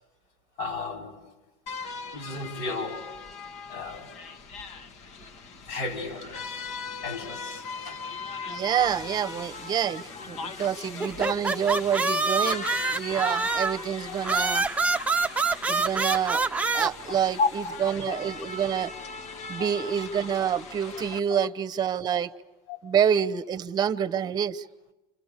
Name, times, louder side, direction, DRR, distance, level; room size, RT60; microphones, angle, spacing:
voice 1, 0.6-1.2 2.1-3.1 3.7-4.1 5.7-6.5 7.0-8.0 10.6-10.7 11.5-11.6 15.3-15.6 17.1-17.7 18.0-18.2 19.6-19.7 21.3-21.4 22.7-23.0, left 3 dB, 70° left, 5.4 m, -33 dB
sound 1, 1.7-21.2, left 4 dB, 55° left, 1.6 m, -40 dB
voice 2, 8.5-12.6 12.9-14.6 15.7-16.4 16.7-18.9 19.5-22.3 22.8-24.6, right 8 dB, 30° right, 1.1 m, -27 dB
sound 2, 11.0-13.8 14.2-16.9, right 3 dB, 10° right, 0.9 m, -26 dB
30.0 x 27.5 x 6.8 m
supercardioid pair, 125°, 14 cm